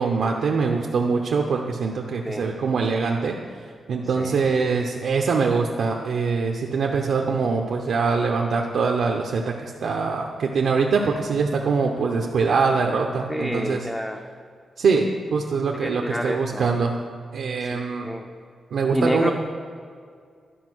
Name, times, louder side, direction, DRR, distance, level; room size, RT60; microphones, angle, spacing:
voice 1, 0.0-3.4 3.9-13.9 14.8-15.1 15.3-17.0 17.3-18.1 18.7-19.3, right 5 dB, 75° right, 1 dB, 0.7 m, -23 dB
voice 2, 4.2-4.5 13.3-14.2 15.8-16.7 17.6-17.7 18.0-18.3 18.9-19.3, equal, 5° left, 3 dB, 0.5 m, -28 dB
11.5 x 4.9 x 6.2 m, 2.1 s
wide cardioid pair, 145°, 0 cm